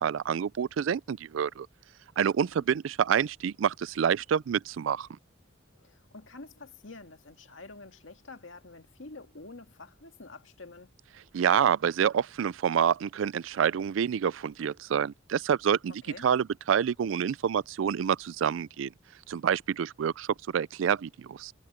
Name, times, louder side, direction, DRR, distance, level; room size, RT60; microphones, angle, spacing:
voice 1, 0.0-1.7 2.2-5.1 11.3-15.9 16.2-18.9 19.3-21.5, right 8 dB, 80° right, 0.4 m, -27 dB
voice 2, 5.7-10.9 16.0-16.3, left 3 dB, 85° left, 2.1 m, -48 dB
head